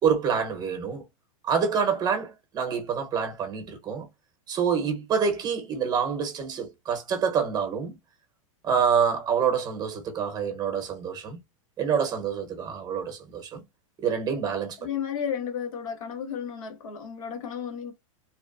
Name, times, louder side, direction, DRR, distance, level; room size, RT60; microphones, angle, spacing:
voice 1, 0.0-1.0 1.4-4.1 4.5-8.0 8.6-11.4 11.8-13.6 14.0-14.8, right 6 dB, 25° right, 0.9 m, -27 dB
voice 2, 14.8-17.9, left 8 dB, 80° left, 1.1 m, -33 dB
2.9 x 2.1 x 2.5 m
supercardioid pair, 140°, 18 cm